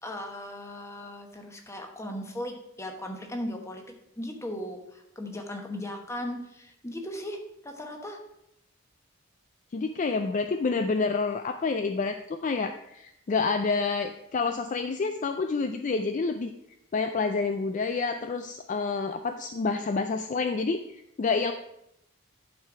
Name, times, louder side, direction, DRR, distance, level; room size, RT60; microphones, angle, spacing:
voice 1, 0.0-3.8 4.2-8.2, left 1 dB, 15° left, 3 dB, 1.0 m, -37 dB
voice 2, 9.7-16.5 16.9-21.5, left 4 dB, 35° left, 8 dB, 0.3 m, -28 dB
11.0 x 4.6 x 4.9 m, 0.80 s
head